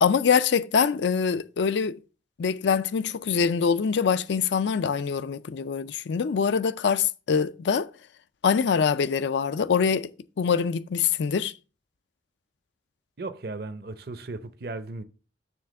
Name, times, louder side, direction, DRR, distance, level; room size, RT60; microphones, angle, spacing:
voice 1, 0.0-2.0 2.4-7.9 8.4-10.1 10.4-11.5, left 6 dB, 75° left, 0.4 m, -24 dB
voice 2, 13.2-15.0, right 3 dB, 55° right, 0.6 m, -36 dB
7.0 x 3.4 x 6.3 m
head